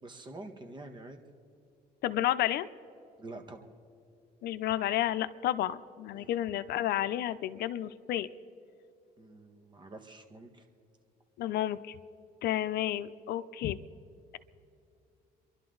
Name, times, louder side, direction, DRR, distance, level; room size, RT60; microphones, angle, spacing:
voice 1, 0.0-1.2 3.2-3.7 6.1-6.4 9.2-10.6, right 2 dB, 25° right, 5 dB, 1.5 m, -47 dB
voice 2, 2.0-2.7 4.4-8.3 11.4-12.0 12.4-13.8, left 12 dB, 70° left, 13 dB, 0.6 m, -31 dB
29.5 x 11.5 x 3.9 m, 2.5 s
cardioid pair, 110°, 17 cm